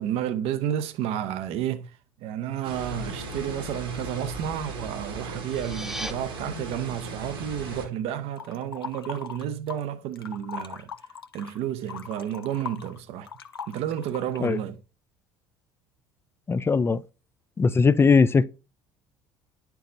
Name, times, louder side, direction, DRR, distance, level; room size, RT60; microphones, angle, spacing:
voice 1, 0.0-1.9 2.2-10.9 11.3-13.3 13.7-14.8, right 10 dB, 55° right, 0.7 m, -31 dB
sound 1, 2.6-7.9, right 1 dB, 75° right, 1.9 m, -37 dB
sound 2, 5.3-6.1, equal, 5° right, 0.7 m, -36 dB
sound 3, 8.4-9.9 10.1-14.6, left 6 dB, 90° left, 0.4 m, -39 dB
voice 2, 16.5-17.0 17.6-18.4, left 5 dB, 20° left, 0.4 m, -19 dB
10.0 x 4.6 x 2.6 m
figure-of-eight pair, 60°, 12 cm